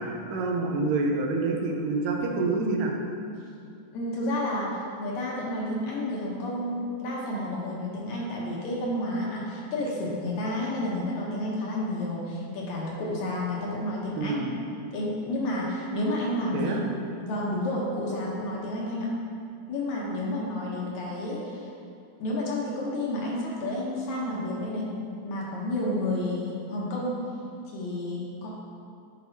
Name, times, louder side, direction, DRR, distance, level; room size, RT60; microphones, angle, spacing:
voice 1, 0.0-2.9 14.1-14.5 16.5-16.8, right 3 dB, 85° right, 1 dB, 2.4 m, -27 dB
voice 2, 3.9-14.4 14.9-16.8 17.2-19.1 19.7-21.7 22.2-24.9 25.2-27.2 27.7-28.5, left 1 dB, 70° left, -4 dB, 2.0 m, -30 dB
9.9 x 4.7 x 2.6 m, 2.5 s
omnidirectional pair, 3.8 m